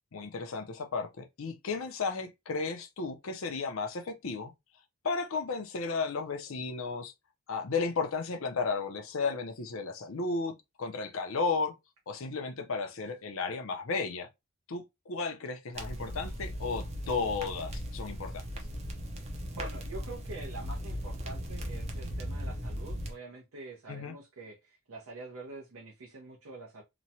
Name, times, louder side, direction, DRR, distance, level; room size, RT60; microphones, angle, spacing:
voice 1, 0.1-4.5 5.0-7.1 7.5-10.5 10.8-11.8 12.1-14.3 14.7-18.4 23.9-24.2, left 4 dB, 65° left, 0.6 m, -34 dB
sound 1, 15.7-23.1, equal, 30° right, 0.6 m, -38 dB
voice 2, 19.5-26.8, right 3 dB, 75° right, 0.8 m, -46 dB
3.0 x 2.2 x 2.7 m
head